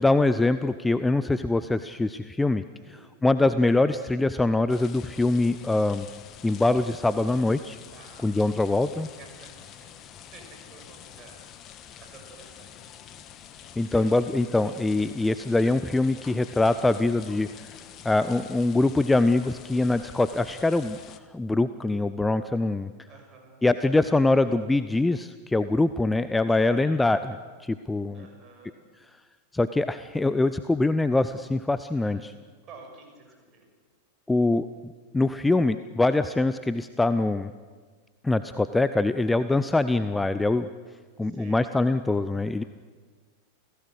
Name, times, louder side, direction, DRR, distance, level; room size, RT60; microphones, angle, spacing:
voice 1, 0.0-2.6 2.9-6.1 6.4-7.8 8.2-9.1 13.8-17.5 18.0-21.0 21.3-22.9 23.6-27.4 27.6-28.3 29.5-32.3 34.3-37.5 38.2-40.7 41.2-42.6, left 2 dB, 10° left, 13 dB, 0.6 m, -23 dB
voice 2, 2.8-3.1 7.9-8.3 9.2-10.0 10.3-11.7 12.0-12.9 13.8-14.0 23.1-23.7 26.7-27.0 28.1-28.8 31.9-32.4 32.6-33.6 41.2-41.7, right 4 dB, 30° right, 2 dB, 6.4 m, -51 dB
sound 1, 4.7-21.2, left 9 dB, 30° left, 1.3 m, -47 dB
29.5 x 16.5 x 6.4 m, 1.5 s
figure-of-eight pair, 90°, 0 cm